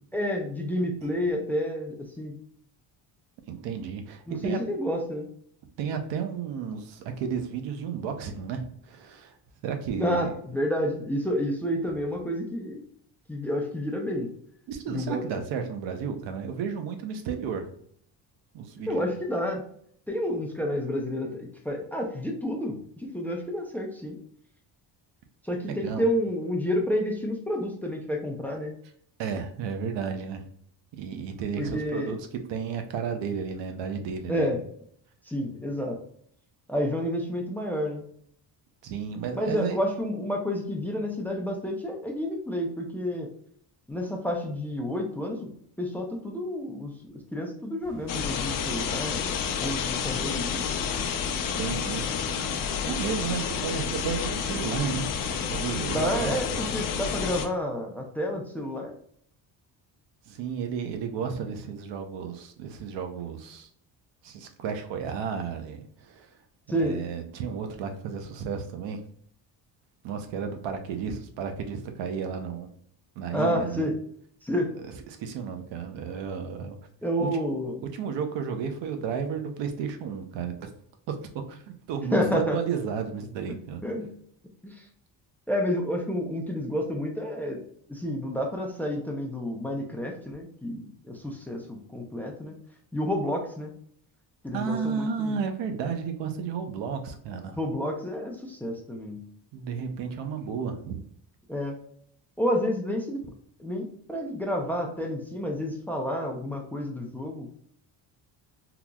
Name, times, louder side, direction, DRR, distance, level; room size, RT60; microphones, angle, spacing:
voice 1, 0.1-2.4 4.3-5.3 10.0-12.8 13.3-14.3 14.9-15.3 18.9-19.6 20.1-24.2 25.4-28.7 31.6-32.1 34.3-34.6 35.2-36.0 36.7-38.0 39.3-43.3 43.9-45.5 45.8-49.2 49.6-50.6 55.9-58.9 66.7-67.0 73.3-74.0 74.4-74.7 77.0-77.8 82.1-82.6 83.5-83.6 83.8-84.1 84.6-84.9 85.5-87.6 87.9-92.6 92.9-93.7 94.4-95.5 97.6-99.2 101.5-101.8 102.4-103.2 103.6-107.5, equal, 5° left, 1 dB, 0.4 m, -30 dB
voice 2, 3.5-4.6 5.8-9.3 9.6-10.2 14.7-17.7 18.5-19.2 25.7-26.0 29.2-30.4 31.0-32.2 32.5-34.5 38.8-39.8 51.4-52.1 52.3-55.1 55.5-56.7 60.3-63.7 64.2-66.3 66.8-69.0 70.0-72.7 73.2-73.9 75.2-76.8 77.2-77.3 77.9-80.7 81.1-81.2 81.5-83.8 94.5-97.6 99.5-101.0, right 6 dB, 85° right, 6 dB, 0.7 m, -33 dB
sound 1, 47.8-56.3, right 2 dB, 45° right, 0.9 m, -46 dB
sound 2, 48.1-57.5, left 7 dB, 50° left, 0.5 m, -30 dB
3.9 x 2.9 x 2.3 m, 0.63 s
cardioid pair, 140°, 42 cm